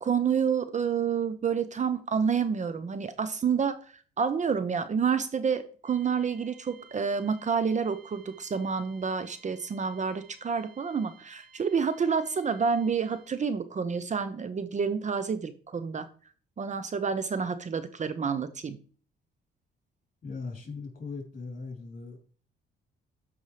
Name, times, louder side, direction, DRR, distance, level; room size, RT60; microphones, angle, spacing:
voice 1, 0.0-16.1 16.6-18.8, right 6 dB, 35° right, 12 dB, 0.7 m, -29 dB
sound 1, 5.8-13.6, right 5 dB, 75° right, 3.9 m, -57 dB
voice 2, 20.2-22.2, left 4 dB, 45° left, 1 dB, 3.7 m, -39 dB
13.0 x 5.4 x 3.3 m, 0.42 s
cardioid pair, 90°, 20 cm